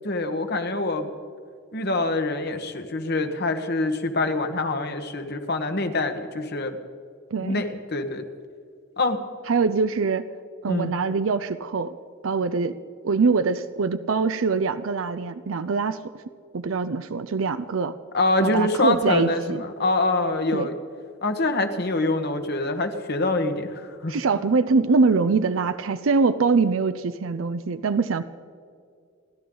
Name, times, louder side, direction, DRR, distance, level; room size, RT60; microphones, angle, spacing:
voice 1, 0.0-1.1 1.7-6.7 7.4-8.2 9.0-9.2 10.7-10.9 18.1-20.7 21.2-24.1, left 2 dB, 55° left, 7 dB, 1.3 m, -25 dB
voice 2, 7.3-7.6 9.5-10.3 10.6-12.0 12.2-12.8 13.0-16.0 16.5-17.9 18.4-19.6 20.5-20.7 24.1-28.2, right 4 dB, 85° right, 11 dB, 0.5 m, -23 dB
29.5 x 12.0 x 3.9 m, 2.3 s
head